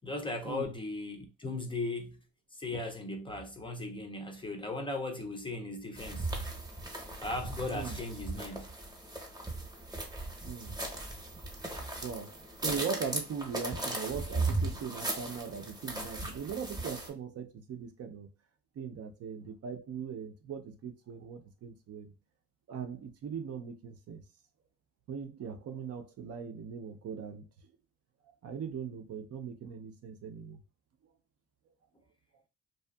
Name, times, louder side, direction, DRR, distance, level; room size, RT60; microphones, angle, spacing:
voice 1, 0.0-2.2 2.5-6.3 7.2-8.7, left 2 dB, 15° left, 0.4 m, -37 dB
sound 1, 6.0-17.1, right 2 dB, 15° right, 0.8 m, -37 dB
voice 2, 10.4-10.8 11.1-11.2 12.0-18.3 18.8-22.1 22.7-24.2 25.1-27.5 28.4-30.6, right 6 dB, 55° right, 0.5 m, -40 dB
2.7 x 2.3 x 2.2 m
cardioid pair, 90°, 30 cm